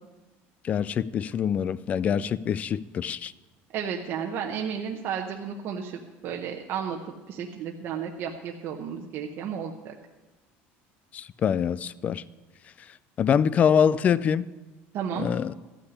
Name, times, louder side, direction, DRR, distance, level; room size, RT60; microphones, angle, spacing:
voice 1, 0.6-3.3 11.1-12.2 13.2-14.5 15.2-15.5, left 8 dB, 30° left, 19 dB, 0.3 m, -24 dB
voice 2, 3.7-9.9 14.9-15.3, right 7 dB, 45° right, 2 dB, 0.9 m, -33 dB
13.5 x 5.8 x 9.7 m, 1.2 s
cardioid pair, 155°, 5 cm